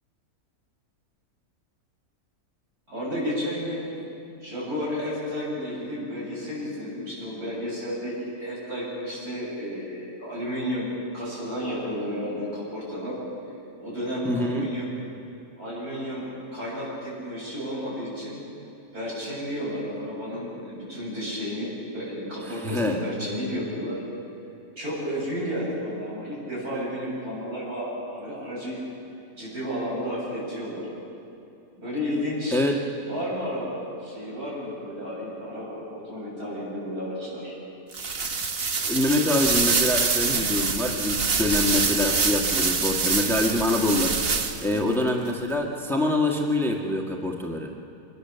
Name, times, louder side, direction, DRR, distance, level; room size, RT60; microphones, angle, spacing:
voice 1, 2.9-4.1 4.4-10.9 11.1-13.2 13.8-14.9 15.6-18.4 18.9-24.0 24.8-28.8 29.4-30.8 31.8-32.6 33.0-37.5 44.7-45.0, equal, 80° right, -6 dB, 8.5 m, -32 dB
voice 2, 14.2-14.7 22.5-23.0 32.5-32.9 38.8-44.3 44.6-47.7, left 1 dB, ahead, 1 dB, 1.6 m, -25 dB
sound 1, 37.9-44.8, right 4 dB, 45° right, 1.3 m, -25 dB
24.5 x 21.5 x 7.0 m, 2.8 s
omnidirectional pair, 1.6 m